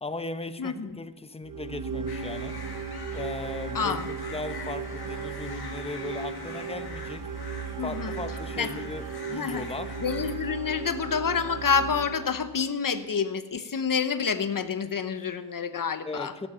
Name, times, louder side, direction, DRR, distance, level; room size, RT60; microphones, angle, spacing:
voice 1, 0.0-2.6 3.1-7.3 7.8-9.9 16.0-16.5, left 2 dB, 15° left, 10 dB, 1.0 m, -37 dB
voice 2, 0.6-1.0 3.7-4.1 7.8-8.1 8.6-8.7 9.3-9.6 10.0-16.3, left 6 dB, 60° left, 11 dB, 1.0 m, -28 dB
sound 1, 1.4-12.8, right 5 dB, 60° right, 1.0 m, -36 dB
sound 2, 2.1-10.4, left 5 dB, 90° left, 1.9 m, -44 dB
17.5 x 10.0 x 5.7 m, 1.2 s
cardioid pair, 40°, 37 cm